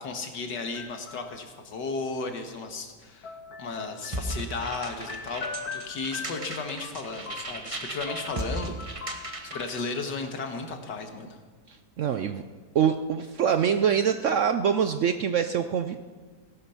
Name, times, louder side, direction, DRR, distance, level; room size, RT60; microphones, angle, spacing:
voice 1, 0.0-9.2 9.5-11.4, left 3 dB, 85° left, 4 dB, 2.1 m, -35 dB
sound 1, 0.6-1.6 3.2-7.8 8.1-10.2, left 5 dB, 65° left, 1.5 m, -42 dB
sound 2, 4.1-9.8, right 1 dB, 20° right, 1.1 m, -36 dB
voice 2, 11.7-12.4 12.7-16.0, right 8 dB, 70° right, 9 dB, 0.7 m, -25 dB
17.5 x 11.5 x 5.8 m, 1.5 s
omnidirectional pair, 1.8 m